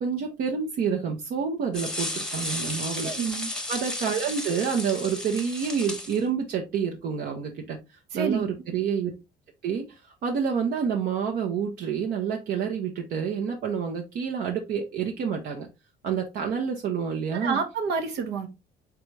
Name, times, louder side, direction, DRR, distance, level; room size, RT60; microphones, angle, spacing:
voice 1, 0.0-3.1 3.7-7.8 8.1-9.1 9.6-15.7 16.0-17.6, right 6 dB, 65° right, 0.8 m, -28 dB
sound 1, 1.7-6.2, left 1 dB, 5° left, 0.9 m, -33 dB
voice 2, 3.0-3.5 8.1-8.5 17.4-18.5, right 5 dB, 85° right, 1.1 m, -28 dB
3.9 x 3.5 x 3.2 m
cardioid pair, 110°, 17 cm